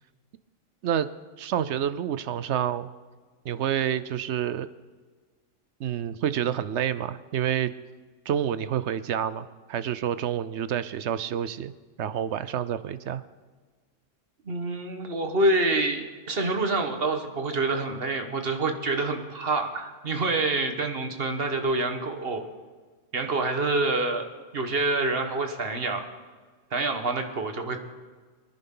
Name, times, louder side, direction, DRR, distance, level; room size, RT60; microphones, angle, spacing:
voice 1, 1.4-2.9 3.4-4.7 5.8-7.7 8.3-11.7 12.0-13.2, right 9 dB, 65° right, 14 dB, 0.9 m, -28 dB
voice 2, 14.4-22.4 23.1-24.3 24.5-26.1 26.7-27.8, right 2 dB, 50° right, 5 dB, 1.6 m, -27 dB
24.0 x 10.5 x 3.9 m, 1.4 s
omnidirectional pair, 1.3 m